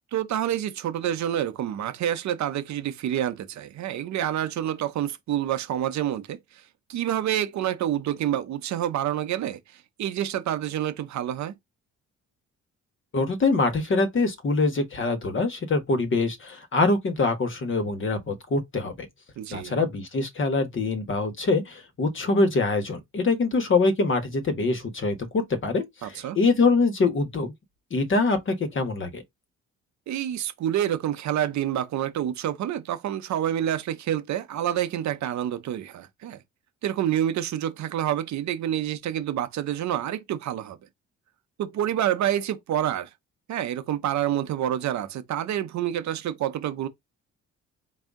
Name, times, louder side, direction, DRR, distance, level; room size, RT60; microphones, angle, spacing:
voice 1, 0.1-6.6 6.9-11.5 19.4-19.8 26.0-26.4 30.1-36.4 36.8-40.8 41.6-43.1 43.5-46.9, right 11 dB, 65° right, 0.7 m, -28 dB
voice 2, 13.1-19.1 19.5-27.5 27.9-29.2, left 3 dB, 40° left, 1.3 m, -24 dB
4.1 x 2.7 x 3.6 m
cardioid pair, 90°, 30 cm